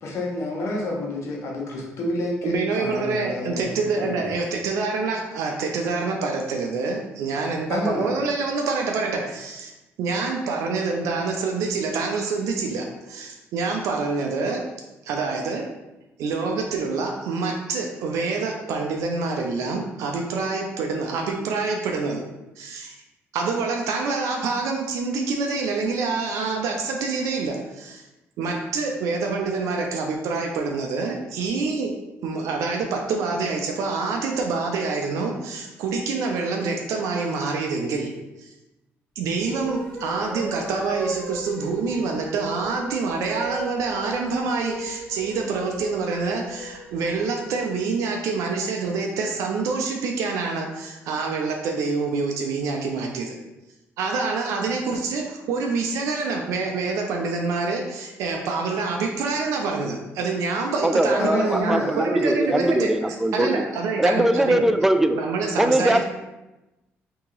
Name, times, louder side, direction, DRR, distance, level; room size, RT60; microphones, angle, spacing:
voice 1, 0.0-3.7 4.1-4.2 7.7-8.1 61.2-62.7, left 1 dB, 65° left, -2 dB, 1.0 m, -29 dB
voice 2, 2.4-9.7 10.0-14.6 15.1-15.6 16.2-22.2 22.6-22.9 23.3-28.0 28.4-31.9 32.2-38.1 38.4-38.5 39.2-53.4 54.0-62.9 63.3-64.6 65.1-66.0, right 4 dB, 80° right, 1 dB, 0.4 m, -26 dB
sound 1, 39.4-47.5, right 2 dB, 20° left, 1.1 m, -37 dB
voice 3, 60.8-63.7 64.0-65.2 65.6-66.0, right 1 dB, 5° right, 8 dB, 0.3 m, -21 dB
2.8 x 2.8 x 3.8 m, 1.0 s
supercardioid pair, 75°, 5 cm